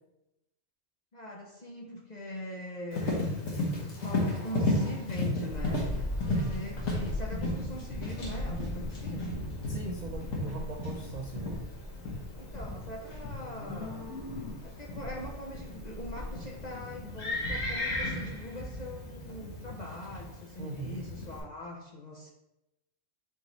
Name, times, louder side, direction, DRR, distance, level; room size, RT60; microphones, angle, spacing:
voice 1, 1.1-3.4 3.9-5.9 6.3-9.4 12.3-14.2 14.6-22.3, equal, 50° left, -1 dB, 0.5 m, -42 dB
Livestock farm animals working animals, 2.9-21.4, left 2 dB, 80° left, 1.5 m, -35 dB
sound 1, 5.5-18.7, left 1 dB, 20° right, 0.6 m, -41 dB
voice 2, 6.2-6.6 9.7-11.6 20.6-21.0, right 3 dB, 65° right, 1 dB, 0.4 m, -40 dB
4.5 x 3.0 x 4.0 m, 0.91 s
omnidirectional pair, 1.3 m